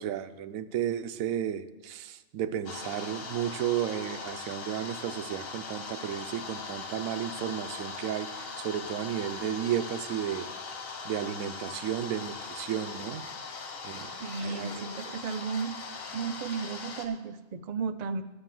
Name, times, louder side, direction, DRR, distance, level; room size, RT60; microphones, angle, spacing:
voice 1, 0.0-8.3 8.6-10.5 11.0-13.2 13.8-14.1 14.4-15.1, right 10 dB, 85° right, 12 dB, 1.0 m, -33 dB
sound 1, 2.7-17.1, left 4 dB, 75° left, 1.4 m, -40 dB
voice 2, 14.2-15.8 16.1-18.2, right 5 dB, 70° right, 10 dB, 0.4 m, -34 dB
8.8 x 7.0 x 7.5 m, 1.1 s
omnidirectional pair, 1.4 m